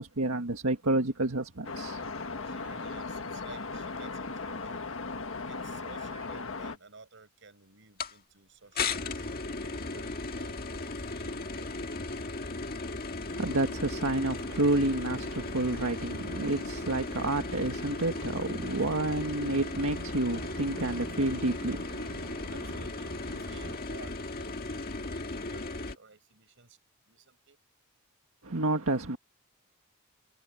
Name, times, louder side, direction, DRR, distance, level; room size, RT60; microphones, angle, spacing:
voice 1, 0.0-2.0 13.3-23.7 28.4-29.2, right 2 dB, 80° right, 1.8 m, -30 dB
sound 1, 1.6-6.8, left 3 dB, 65° left, 1.6 m, -37 dB
voice 2, 2.4-4.9 5.5-9.3 9.6-12.2 22.5-26.8 27.0-27.6, right 4 dB, 60° right, 6.2 m, -54 dB
Piano, 5.6-6.4, right 4 dB, 25° right, 6.6 m, -55 dB
sound 2, 8.0-8.1 8.8-26.0, left 3 dB, 45° left, 1.7 m, -36 dB
head